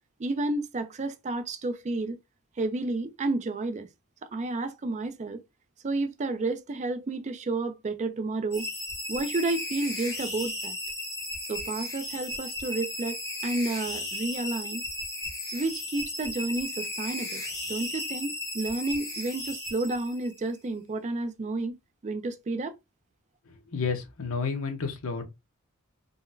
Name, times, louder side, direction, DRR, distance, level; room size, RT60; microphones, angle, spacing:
voice 1, 0.2-2.2 2.6-3.9 4.2-5.4 5.8-8.7 9.1-10.8 11.5-14.8 15.5-17.4 17.7-21.7 22.0-22.8, right 2 dB, 30° right, 0.4 m, -31 dB
sound 1, 8.5-20.4, left 1 dB, 15° left, 1.0 m, -35 dB
voice 2, 23.7-25.2, left 5 dB, 65° left, 0.8 m, -30 dB
3.8 x 2.1 x 2.5 m
head